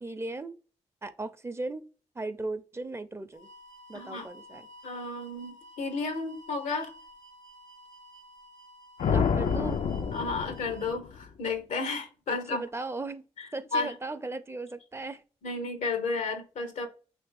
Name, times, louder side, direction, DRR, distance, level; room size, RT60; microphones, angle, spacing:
voice 1, 0.0-0.5 1.0-1.8 2.1-3.5 3.9-4.7 9.1-9.8 12.5-13.2 13.5-15.2, right 2 dB, 20° right, 0.5 m, -37 dB
sound 1, 3.3-10.9, equal, 90° right, 0.6 m, -52 dB
voice 2, 3.9-4.3 4.8-6.9 10.1-12.6 13.4-13.9 15.4-16.9, left 3 dB, 90° left, 0.8 m, -32 dB
sound 2, 9.0-11.3, left 6 dB, 75° left, 0.4 m, -28 dB
3.4 x 2.7 x 3.4 m
cardioid pair, 55°, 12 cm